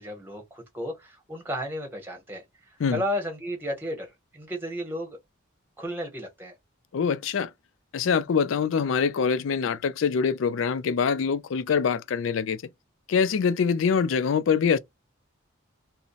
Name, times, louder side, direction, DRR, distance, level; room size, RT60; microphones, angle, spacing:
voice 1, 0.0-4.1 4.3-5.2 5.8-6.5, equal, 10° right, 0.8 m, -33 dB
voice 2, 6.9-7.5 7.9-12.6 13.1-14.8, left 6 dB, 75° left, 0.4 m, -24 dB
2.7 x 2.0 x 2.4 m
head